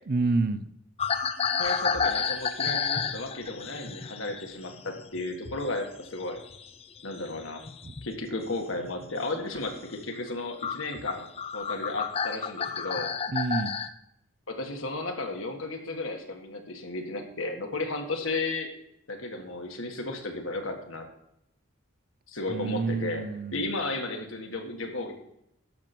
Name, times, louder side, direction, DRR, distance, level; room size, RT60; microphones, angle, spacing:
voice 1, 0.1-0.7 7.8-7.9 13.3-13.7 22.5-23.7, right 3 dB, 45° right, 0.5 m, -28 dB
sound 1, 1.0-5.8 6.1-8.2 8.7-9.1 9.5-9.7 10.3-10.4 10.6-13.9, left 6 dB, 30° left, 0.4 m, -31 dB
voice 2, 1.5-6.4 7.0-7.6 8.0-11.3 11.5-13.1 14.5-18.7 19.1-21.1 22.3-23.3 23.5-25.1, left 2 dB, 80° left, 1.7 m, -34 dB
12.0 x 6.7 x 4.4 m
head